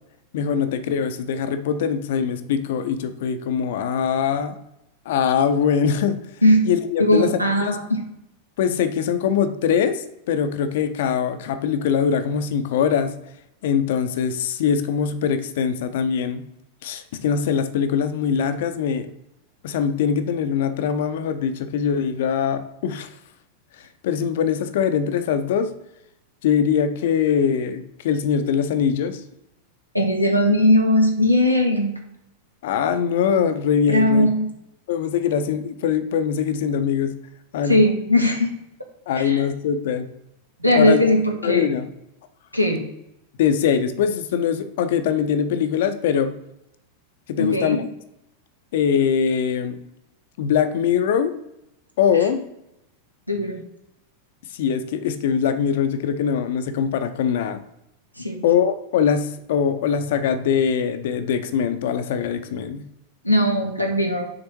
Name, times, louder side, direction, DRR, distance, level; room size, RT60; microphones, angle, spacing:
voice 1, 0.3-4.6 5.1-6.2 6.6-7.3 7.6-7.8 8.6-13.1 13.6-16.4 16.8-19.1 19.6-23.1 24.0-25.7 26.4-29.2 32.6-34.3 34.9-37.1 37.5-37.8 39.1-40.1 40.7-41.0 41.4-41.9 43.4-46.4 47.3-47.8 48.7-49.8 50.4-51.3 52.0-52.5 54.5-57.6 58.4-62.9, left 7 dB, 55° left, 10 dB, 0.6 m, -22 dB
voice 2, 7.0-8.0 29.9-31.9 33.9-34.5 37.7-38.5 39.1-39.4 40.6-41.7 42.5-42.9 47.4-47.8 53.3-53.7 58.2-58.4 63.2-64.3, left 1 dB, 90° right, 2 dB, 0.8 m, -19 dB
6.6 x 3.4 x 4.5 m, 0.84 s
figure-of-eight pair, 90°, 0 cm